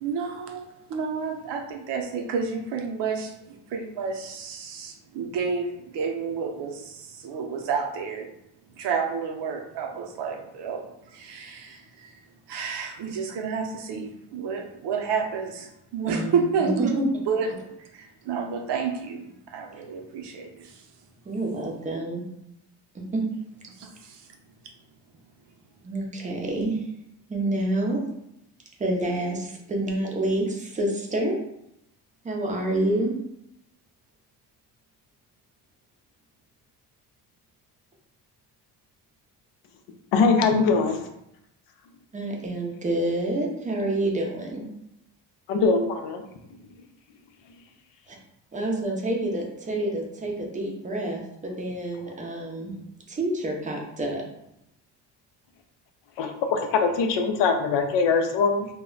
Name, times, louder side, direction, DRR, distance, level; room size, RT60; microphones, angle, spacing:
voice 1, 0.0-8.3 8.8-12.1 12.5-17.0 17.3-20.8 23.8-24.3, right 5 dB, 75° right, 3 dB, 0.6 m, -30 dB
voice 2, 16.6-17.0 21.3-22.2 22.9-23.2 25.8-26.8 27.3-28.0 28.8-31.3 32.2-33.1 42.1-44.6 48.1-48.2 48.5-52.8 53.1-54.2, right 1 dB, 20° right, 0 dB, 0.4 m, -28 dB
voice 3, 40.1-41.0 45.5-46.2 56.2-58.7, left 4 dB, 90° left, 6 dB, 0.5 m, -22 dB
2.1 x 2.1 x 3.7 m, 0.81 s
cardioid pair, 150°, 42 cm